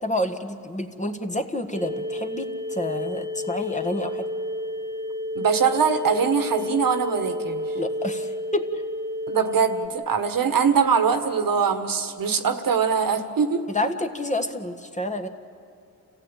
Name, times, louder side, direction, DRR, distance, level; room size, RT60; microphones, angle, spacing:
voice 1, 0.0-4.3 7.7-8.8 13.7-15.3, left 1 dB, 20° left, 6 dB, 1.5 m, -29 dB
sound 1, 1.7-9.9, left 1 dB, 10° right, 1.8 m, -31 dB
voice 2, 5.3-7.6 9.3-13.6, right 6 dB, 65° right, 8 dB, 1.6 m, -22 dB
28.5 x 15.5 x 9.0 m, 2.6 s
cardioid pair, 80°, 37 cm